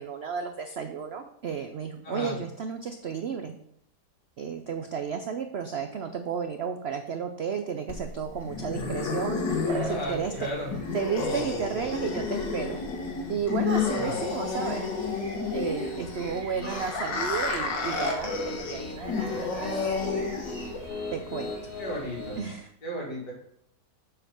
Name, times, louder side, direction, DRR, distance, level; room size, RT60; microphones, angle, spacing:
voice 1, 0.0-3.5 4.4-10.5 10.9-12.8 13.3-15.2 15.5-19.9 21.1-21.7 22.4-22.7, right 6 dB, 80° right, 6 dB, 0.5 m, -33 dB
voice 2, 2.0-2.4 9.9-10.7 13.9-14.2 21.8-22.4 22.8-23.3, equal, 70° left, -4 dB, 3.3 m, -34 dB
sound 1, 7.9-20.9, left 4 dB, 90° left, 2.0 m, -31 dB
sound 2, 9.6-22.4, right 2 dB, 40° right, 1.8 m, -44 dB
Piano, 15.6-22.4, left 2 dB, 50° left, 2.0 m, -40 dB
7.6 x 5.0 x 5.9 m, 0.70 s
omnidirectional pair, 1.9 m